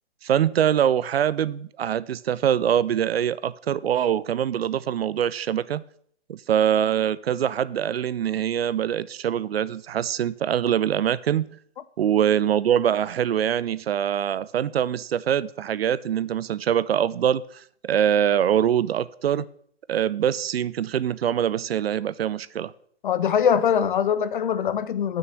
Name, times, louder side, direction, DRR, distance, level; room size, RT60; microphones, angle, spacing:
voice 1, 0.2-5.8 6.3-11.5 12.0-17.4 17.8-19.4 19.9-22.7, right 9 dB, 60° right, 0.5 m, -23 dB
voice 2, 23.0-25.2, left 8 dB, 50° left, 0.6 m, -22 dB
6.5 x 6.4 x 6.9 m
figure-of-eight pair, 135°, 34 cm